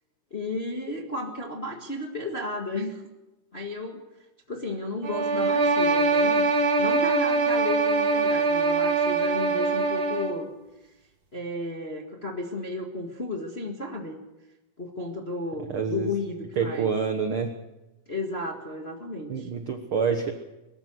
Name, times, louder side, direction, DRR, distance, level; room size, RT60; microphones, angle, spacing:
voice 1, 0.3-3.0 3.5-4.0 4.5-10.5 11.3-14.2 14.8-16.9 18.1-19.5, left 2 dB, 30° left, 2 dB, 1.1 m, -33 dB
sound 1, 5.0-10.4, right 3 dB, 45° right, 2.1 m, -23 dB
voice 2, 15.7-16.1 16.6-17.5 19.3-20.3, right 6 dB, 70° right, 6 dB, 1.2 m, -27 dB
23.5 x 14.0 x 7.9 m, 1.0 s
omnidirectional pair, 4.3 m